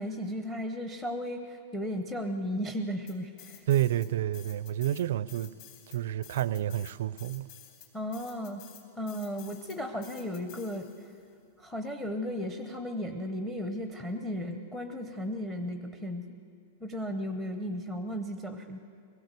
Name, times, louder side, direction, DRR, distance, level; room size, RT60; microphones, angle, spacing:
voice 1, 0.0-3.6 7.9-8.6 9.0-10.9 11.6-16.4 16.8-18.8, equal, 5° left, 0.8 m, -35 dB
sound 1, 3.1-4.1 4.3-11.2, left 11 dB, 45° left, 3.7 m, -52 dB
voice 2, 3.7-5.5 5.9-7.5, right 12 dB, 65° right, 0.5 m, -29 dB
23.0 x 17.0 x 8.2 m
supercardioid pair, 170°, 0 cm